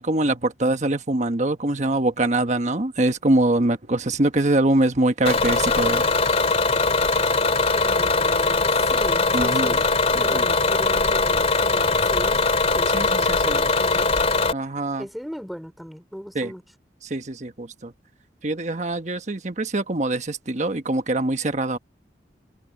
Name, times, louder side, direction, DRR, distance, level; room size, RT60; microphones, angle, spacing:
voice 1, 0.0-6.1 9.3-9.8 10.1-10.4 12.9-13.7 14.0-14.1 14.5-15.1 16.3-16.5 17.0-17.9 18.4-21.8, right 2 dB, 40° right, 1.3 m, -23 dB
Bus / Engine, 5.2-14.5, left 3 dB, 35° left, 2.6 m, -21 dB
voice 2, 7.8-9.9 10.2-12.4 12.7-14.1 15.0-16.6, equal, ahead, 4.1 m, -37 dB
head